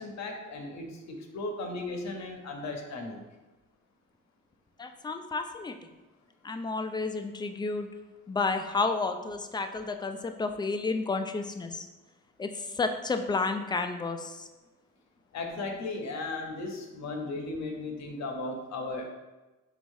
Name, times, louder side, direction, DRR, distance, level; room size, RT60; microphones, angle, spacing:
voice 1, 0.0-3.2 15.3-19.1, left 2 dB, 65° left, 3 dB, 0.8 m, -36 dB
voice 2, 4.8-5.8 6.4-7.9 8.3-11.9 12.4-14.5, left 3 dB, 15° left, 7 dB, 0.3 m, -31 dB
4.7 x 4.0 x 2.7 m, 1.1 s
cardioid pair, 90°, 30 cm